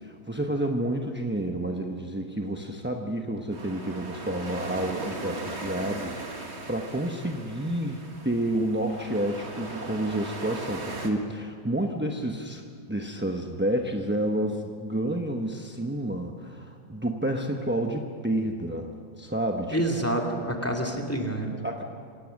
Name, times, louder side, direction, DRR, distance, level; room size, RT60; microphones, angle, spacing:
voice 1, 0.0-12.6 12.9-19.8 21.6-21.8, right 1 dB, 10° right, 2 dB, 0.6 m, -30 dB
sound 1, 3.5-11.1, right 2 dB, 40° right, 2.0 m, -38 dB
voice 2, 19.7-21.6, right 1 dB, 10° left, 1 dB, 2.3 m, -28 dB
27.0 x 17.0 x 6.5 m, 2.2 s
omnidirectional pair, 1.9 m